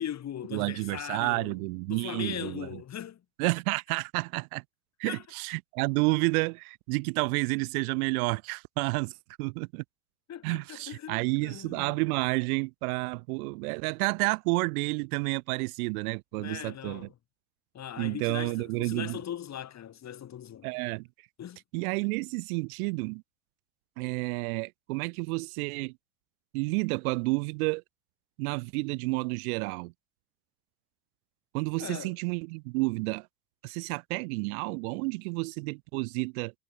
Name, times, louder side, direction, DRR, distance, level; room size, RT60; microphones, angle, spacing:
voice 1, 0.0-1.6 1.9-3.5 5.0-5.2 10.3-12.0 16.3-17.1 17.7-20.7 21.4-21.6 31.8-32.1, left 10 dB, 35° left, 4.8 m, -39 dB
voice 2, 0.5-2.7 3.4-4.6 5.0-9.1 9.4-9.8 10.4-17.1 18.0-19.2 20.6-21.1 21.7-23.2 24.0-25.9 26.5-27.8 28.4-29.9 31.5-33.3 33.6-36.5, right 27 dB, 65° right, 2.7 m, -30 dB
hypercardioid pair, 100°, 46 cm